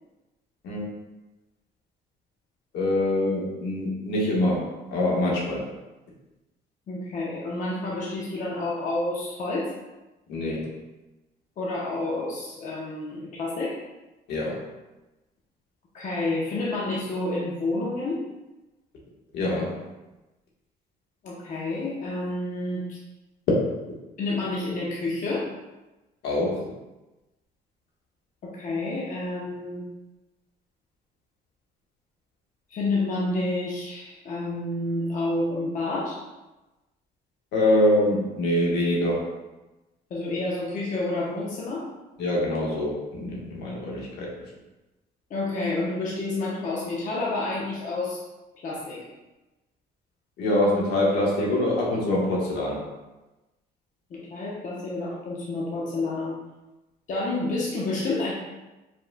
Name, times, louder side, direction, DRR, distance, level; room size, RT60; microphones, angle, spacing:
voice 1, 2.7-5.6 10.3-10.7 14.3-14.6 19.3-19.8 26.2-26.6 37.5-39.3 42.2-44.3 50.4-52.8, left 1 dB, 80° left, -4 dB, 1.4 m, -24 dB
voice 2, 6.9-9.7 11.6-13.7 15.9-18.2 21.2-23.0 24.2-25.5 28.4-29.9 32.7-36.2 40.1-41.9 45.3-48.2 48.5-49.1 54.1-56.3 57.1-58.3, left 2 dB, 50° left, -5 dB, 0.9 m, -29 dB
5.0 x 4.2 x 2.3 m, 1.1 s
cardioid pair, 110°, 17 cm